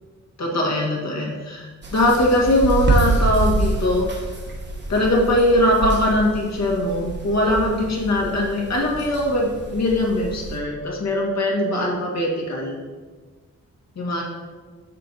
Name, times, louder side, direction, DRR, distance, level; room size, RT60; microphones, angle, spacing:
voice 1, 0.4-4.1 4.9-12.8 14.0-14.2, left 1 dB, 65° left, -2 dB, 1.8 m, -21 dB
sound 1, 1.8-10.6, right 3 dB, 35° right, 1.1 m, -27 dB
6.8 x 6.5 x 4.0 m, 1.4 s
wide cardioid pair, 165°, 29 cm